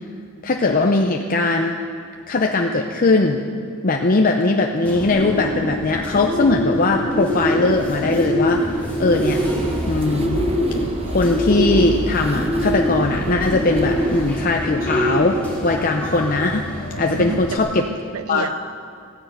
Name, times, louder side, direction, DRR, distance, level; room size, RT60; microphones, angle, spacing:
voice 1, 0.4-1.8 2.3-3.4 3.8-8.6 9.0-9.4 9.8-10.4 11.1-15.4 15.6-16.6 17.0-17.9 18.3-18.5, left 3 dB, 40° left, 2 dB, 0.7 m, -19 dB
Bird, 4.8-17.6, equal, 5° left, 2.6 m, -24 dB
sound 1, 8.6-14.4, right 1 dB, 25° right, 0.9 m, -30 dB
voice 2, 16.9-18.8, right 4 dB, 70° right, 14 dB, 0.6 m, -31 dB
15.5 x 9.9 x 8.1 m, 2.3 s
head